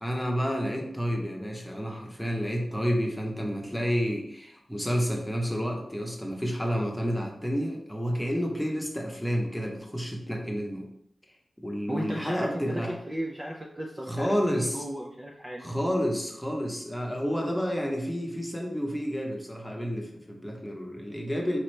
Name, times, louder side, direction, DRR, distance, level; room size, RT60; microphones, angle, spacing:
voice 1, 0.0-10.9 11.6-13.0 14.1-14.8 15.6-21.6, equal, 5° left, 0 dB, 0.9 m, -30 dB
voice 2, 11.9-15.7, equal, 20° right, -2 dB, 0.5 m, -35 dB
5.0 x 2.9 x 3.2 m, 0.74 s
wide cardioid pair, 100°, 0 cm